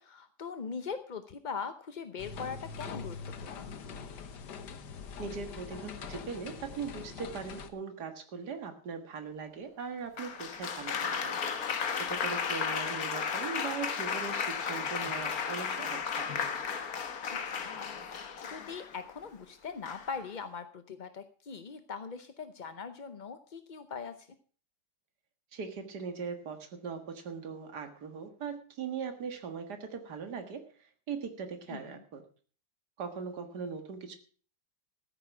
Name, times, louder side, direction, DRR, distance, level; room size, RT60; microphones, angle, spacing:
voice 1, 0.0-3.7 17.5-24.3 31.7-32.0, left 5 dB, 45° left, 9 dB, 0.6 m, -41 dB
sound 1, 2.2-7.7, left 5 dB, 85° left, 1.7 m, -43 dB
voice 2, 5.2-11.4 12.0-16.3 25.5-32.2 33.0-34.2, right 5 dB, 75° right, 7 dB, 2.2 m, -40 dB
Applause, 10.2-19.0 19.9-20.3, left 6 dB, 60° left, 1.7 m, -34 dB
14.0 x 9.3 x 5.9 m, 0.42 s
omnidirectional pair, 1.8 m